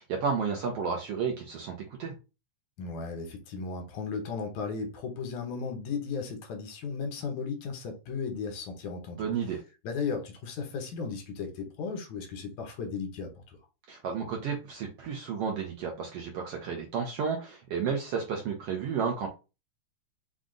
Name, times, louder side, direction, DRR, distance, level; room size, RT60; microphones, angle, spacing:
voice 1, 0.0-1.7 2.0-2.1 9.2-9.6 13.9-19.3, right 6 dB, 70° right, 1.5 m, -32 dB
voice 2, 2.8-9.3 9.8-13.6, left 5 dB, 75° left, 2.2 m, -35 dB
5.2 x 2.4 x 3.7 m
omnidirectional pair, 3.5 m